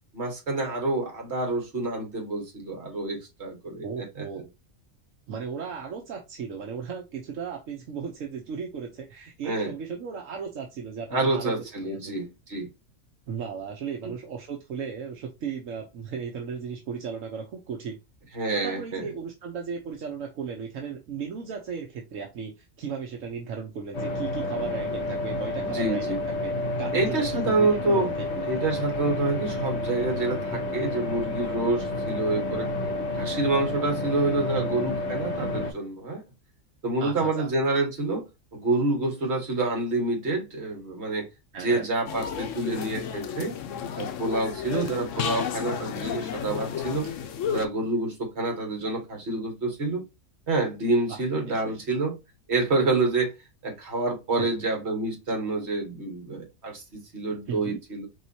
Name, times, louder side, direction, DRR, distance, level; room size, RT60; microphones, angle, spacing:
voice 1, 0.1-4.3 9.4-9.7 11.1-12.7 14.0-14.1 18.3-19.1 25.6-26.2 26.9-28.1 28.5-32.7 33.1-36.2 36.8-38.3 38.5-41.3 41.6-43.6 44.0-47.1 47.5-50.0 50.5-52.1 52.5-53.3 53.6-58.1, right 2 dB, 55° right, 1.9 m, -27 dB
voice 2, 3.8-4.5 5.3-12.2 13.3-18.0 18.5-26.5 26.8-28.0 28.4-28.5 37.0-37.5 41.5-41.9 44.7-45.0 51.1-51.2 51.5-51.8 54.4-54.5 57.5-57.8, right 6 dB, 80° right, 1.2 m, -36 dB
sound 1, 23.9-35.7, left 2 dB, 60° left, 1.4 m, -30 dB
sound 2, 42.1-47.7, left 8 dB, 80° left, 1.0 m, -32 dB
4.7 x 3.8 x 2.7 m
omnidirectional pair, 1.3 m